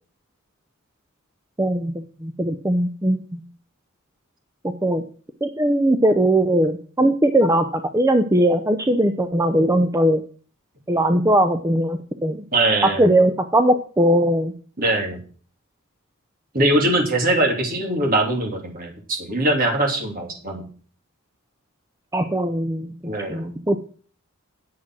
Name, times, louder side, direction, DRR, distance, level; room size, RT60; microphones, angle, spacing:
voice 1, 1.6-3.4 4.6-5.0 5.4-10.2 10.9-12.4 12.8-14.5 22.1-22.9 23.3-23.8, right 1 dB, 15° right, 7 dB, 0.6 m, -20 dB
voice 2, 12.5-13.1 14.8-15.2 16.5-20.7 23.0-23.5, right 1 dB, 40° right, 1 dB, 3.1 m, -22 dB
10.0 x 7.6 x 6.2 m, 0.43 s
head